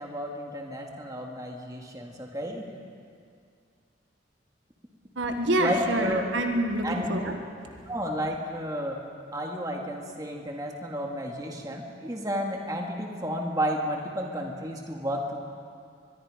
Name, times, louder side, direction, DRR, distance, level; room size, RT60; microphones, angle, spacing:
voice 1, 0.0-2.7 5.6-6.2 6.8-7.1 7.9-9.0 9.3-15.4, equal, 20° right, 0 dB, 2.1 m, -32 dB
voice 2, 5.2-7.4, right 1 dB, 75° right, 4 dB, 1.6 m, -27 dB
23.5 x 22.0 x 5.2 m, 2.3 s
head